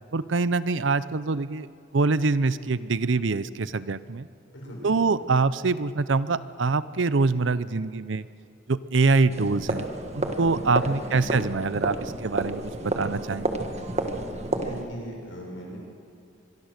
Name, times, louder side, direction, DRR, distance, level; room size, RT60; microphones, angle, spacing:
voice 1, 0.1-1.7 1.9-4.3 4.8-8.3 8.7-9.9 10.1-13.5, right 3 dB, 75° right, 16 dB, 0.7 m, -24 dB
voice 2, 4.5-5.1 10.9-11.4 14.5-15.8, equal, 85° left, -1 dB, 7.1 m, -39 dB
sound 1, 9.3-14.8, right 2 dB, 35° right, 1.5 m, -31 dB
25.0 x 23.5 x 6.6 m, 2.4 s
head